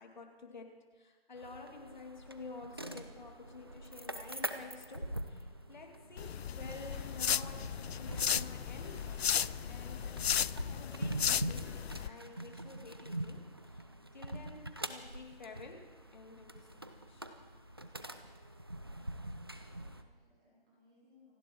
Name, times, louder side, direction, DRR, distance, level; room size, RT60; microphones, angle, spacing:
voice 1, 0.0-9.1 9.3-10.3 10.6-13.9 14.1-17.3, left 3 dB, 45° left, 3 dB, 2.5 m, -51 dB
sound 1, 1.4-20.0, right 1 dB, 25° right, 0.5 m, -44 dB
sound 2, 2.8-10.6, equal, 45° right, 2.7 m, -60 dB
sound 3, 6.2-12.1, left 8 dB, 80° left, 0.5 m, -35 dB
voice 2, 19.1-21.4, left 3 dB, 5° right, -6 dB, 0.9 m, -67 dB
27.5 x 11.0 x 4.6 m, 1.4 s
hypercardioid pair, 170°, 31 cm